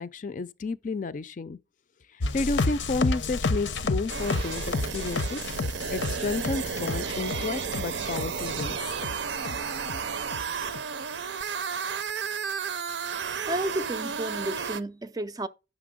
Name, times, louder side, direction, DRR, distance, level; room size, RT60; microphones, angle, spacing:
voice 1, 0.0-1.6 2.1-5.4 5.9-8.8, left 3 dB, 45° left, 0.4 m, -31 dB
sound 1, 2.2-9.1 9.4-10.0 10.3-10.8, left 3 dB, 80° left, 0.7 m, -30 dB
sound 2, 4.1-14.8, right 6 dB, 75° right, 0.6 m, -33 dB
voice 2, 13.5-15.5, right 1 dB, 20° right, 0.4 m, -32 dB
9.2 x 6.0 x 3.6 m
head